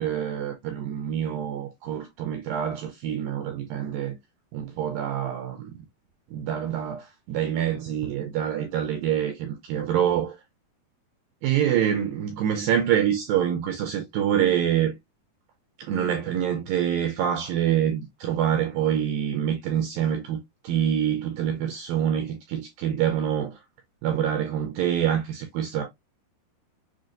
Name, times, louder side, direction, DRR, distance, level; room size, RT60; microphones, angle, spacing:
voice 1, 0.0-4.2 4.5-5.8 6.3-10.4 11.4-15.0 15.8-23.6 24.0-25.8, right 9 dB, 80° right, 2.0 m, -26 dB
6.1 x 2.3 x 2.5 m
omnidirectional pair, 4.6 m